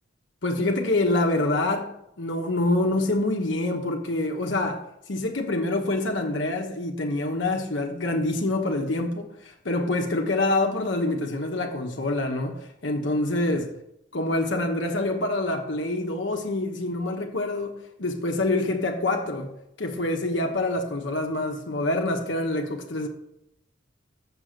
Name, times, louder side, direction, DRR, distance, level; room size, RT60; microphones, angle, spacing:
voice 1, 0.4-13.7 14.1-23.1, left 2 dB, 75° left, 1.2 m, -26 dB
6.8 x 6.8 x 6.6 m
head